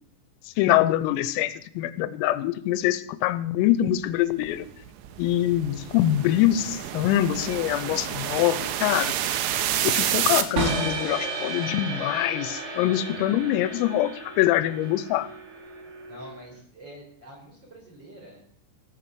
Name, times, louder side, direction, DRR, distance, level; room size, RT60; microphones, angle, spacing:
voice 1, 0.6-4.7 5.2-9.1 9.8-15.3, left 13 dB, 90° left, 15 dB, 3.4 m, -24 dB
sound 1, 4.4-10.4, right 11 dB, 75° right, 3.0 m, -29 dB
sound 2, 10.6-16.5, right 3 dB, 60° right, 4.9 m, -33 dB
voice 2, 13.1-13.5 16.0-18.4, equal, 25° right, -1 dB, 4.7 m, -46 dB
18.0 x 7.1 x 7.8 m, 0.66 s
omnidirectional pair, 5.9 m